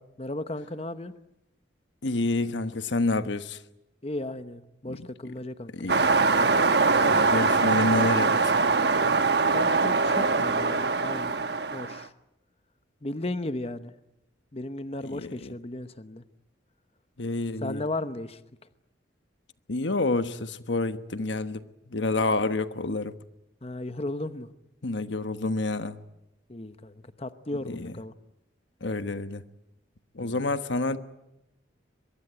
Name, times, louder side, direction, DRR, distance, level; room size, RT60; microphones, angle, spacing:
voice 1, 0.2-1.1 4.0-6.0 9.5-11.3 11.7-12.1 13.0-13.9 14.5-16.2 17.6-18.4 23.6-24.5 26.5-28.1 30.2-30.4, left 2 dB, 35° left, 0.9 m, -35 dB
voice 2, 2.0-3.6 4.9-5.1 5.7-6.0 7.0-8.3 15.0-15.5 17.2-17.8 19.7-21.6 21.9-23.1 24.8-26.0 27.7-27.9 28.8-29.4 30.2-31.0, left 2 dB, 85° left, 1.2 m, -28 dB
sound 1, 5.9-12.0, right 4 dB, 65° right, 1.1 m, -23 dB
23.0 x 23.0 x 9.0 m
head